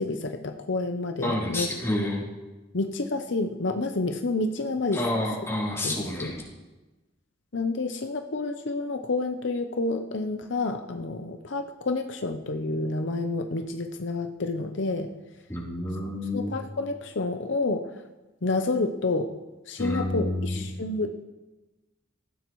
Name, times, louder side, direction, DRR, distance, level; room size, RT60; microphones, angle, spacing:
voice 1, 0.0-1.7 2.7-5.0 5.8-6.3 7.5-15.1 16.3-18.0 18.4-19.3 19.7-21.2, left 3 dB, 65° left, 6 dB, 0.7 m, -29 dB
voice 2, 1.2-2.2 4.9-6.4 15.5-16.6 19.8-20.6, left 1 dB, 15° left, -6 dB, 3.5 m, -29 dB
18.5 x 15.0 x 3.1 m, 1.2 s
head